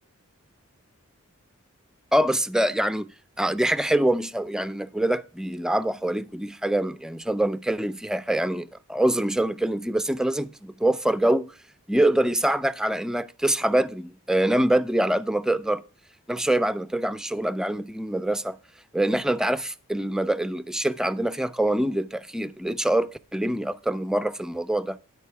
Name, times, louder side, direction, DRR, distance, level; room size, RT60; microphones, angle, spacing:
voice 1, 2.1-3.1 3.4-11.5 11.9-15.8 16.3-18.6 18.9-25.0, right 1 dB, 5° right, 0.3 m, -25 dB
12.0 x 4.7 x 4.5 m
head